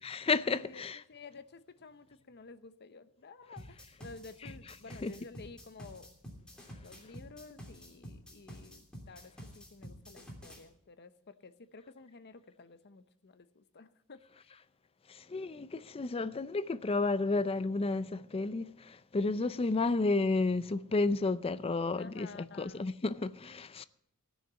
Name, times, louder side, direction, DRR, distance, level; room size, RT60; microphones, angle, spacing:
voice 1, 0.0-1.0 5.0-5.1 15.3-18.6 19.1-23.9, left 3 dB, 25° left, 0.4 m, -31 dB
voice 2, 0.6-6.5 6.8-14.6 19.6-19.9 21.9-22.9, left 4 dB, 50° left, 0.8 m, -52 dB
sound 1, 3.6-10.6, equal, 5° left, 2.8 m, -49 dB
16.5 x 6.5 x 8.1 m
head